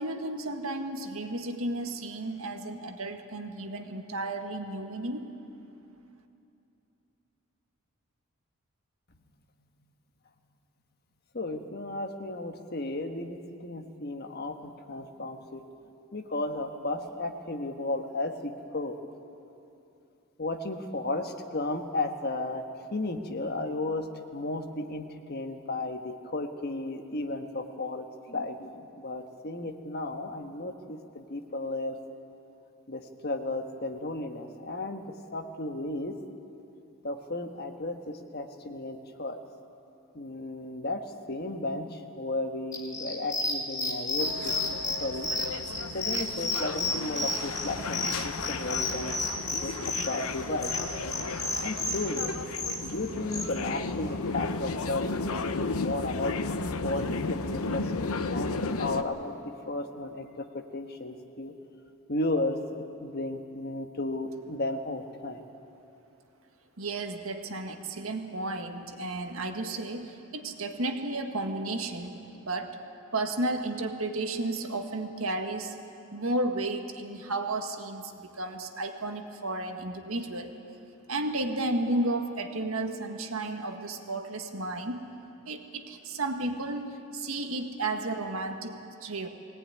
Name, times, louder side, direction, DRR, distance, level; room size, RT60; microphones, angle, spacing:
voice 1, 0.0-5.3 66.8-72.8 73.1-75.8 76.1-80.5 81.1-85.0 85.4-89.3, right 2 dB, 75° right, 5 dB, 1.7 m, -33 dB
voice 2, 11.3-15.6 16.1-19.0 20.4-22.6 22.9-24.1 24.3-32.0 32.9-35.0 35.3-36.2 37.0-39.4 40.1-41.0 41.3-45.3 45.9-49.2 49.5-50.7 51.5-52.3 52.8-56.4 56.8-61.5 62.1-65.4, left 2 dB, 45° left, 6 dB, 1.4 m, -34 dB
sound 1, 42.7-53.5, left 2 dB, 15° left, 2.4 m, -31 dB
sound 2, 44.2-59.0, left 3 dB, 80° left, 0.9 m, -34 dB
21.5 x 18.0 x 9.7 m, 2.8 s
head